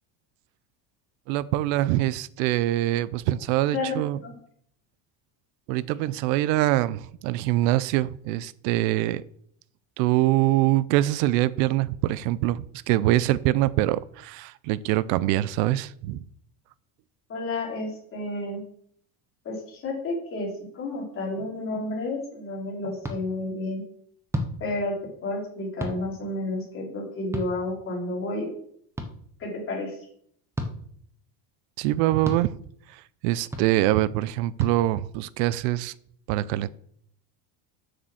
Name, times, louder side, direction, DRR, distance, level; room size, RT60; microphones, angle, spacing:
voice 1, 1.3-4.2 5.7-9.2 10.0-16.2 31.8-32.5 32.9-35.9 36.3-36.7, right 15 dB, 75° right, 18 dB, 0.6 m, -24 dB
voice 2, 3.7-4.3 17.3-18.6 19.4-20.5 20.7-23.8 24.6-24.9 25.2-28.5 29.4-30.0, left 2 dB, 25° left, -2 dB, 3.2 m, -31 dB
sound 1, 23.0-23.2 24.3-24.5 25.8-26.0 27.3-27.5 29.0-29.1 30.5-30.7 32.2-32.4 33.5-33.7 34.6-34.7, equal, 5° right, 0.5 m, -30 dB
7.7 x 6.6 x 6.2 m, 0.65 s
cardioid pair, 175°, 49 cm